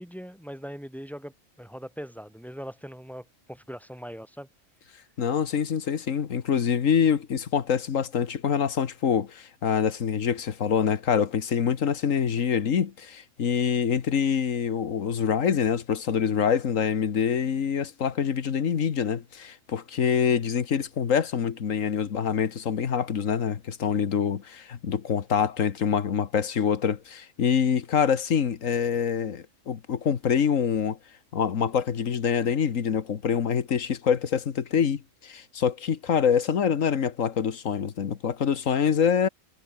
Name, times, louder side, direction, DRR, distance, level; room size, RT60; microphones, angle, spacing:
voice 1, 0.0-4.5, equal, ahead, 2.2 m, -40 dB
voice 2, 5.2-31.0 31.3-39.3, left 7 dB, 85° left, 1.7 m, -25 dB
omnidirectional pair, 1.3 m